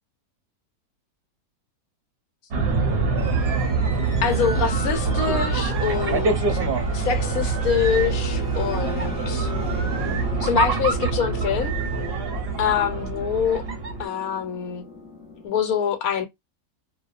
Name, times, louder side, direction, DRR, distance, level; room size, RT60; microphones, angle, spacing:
sound 1, 2.5-14.0, right 4 dB, 55° right, 0.7 m, -25 dB
sound 2, 2.9-3.8 5.1-6.0 7.3-8.2 9.3-10.3 11.6-12.5, right 8 dB, 90° right, 1.1 m, -36 dB
sound 3, 3.2-15.5, left 1 dB, 20° left, 1.0 m, -38 dB
voice 1, 4.2-6.6 6.9-9.5 10.4-11.7 12.6-13.6 14.0-14.8 15.4-16.3, left 7 dB, 75° left, 1.1 m, -25 dB
2.6 x 2.2 x 2.3 m
omnidirectional pair, 1.6 m